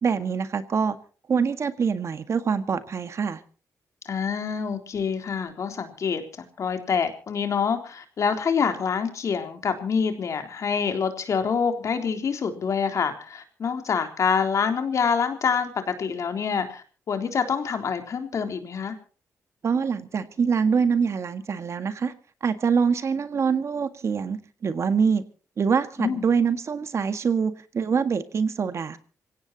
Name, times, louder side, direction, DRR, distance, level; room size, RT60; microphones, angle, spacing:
voice 1, 0.0-1.0 1.3-3.4 19.6-22.1 22.4-25.2 25.6-29.0, right 6 dB, 55° right, 10 dB, 1.8 m, -24 dB
voice 2, 4.1-6.2 6.6-19.0 26.0-26.2, left 6 dB, 60° left, 6 dB, 3.5 m, -26 dB
26.5 x 17.0 x 2.9 m, 0.38 s
cardioid pair, 100°, 6 cm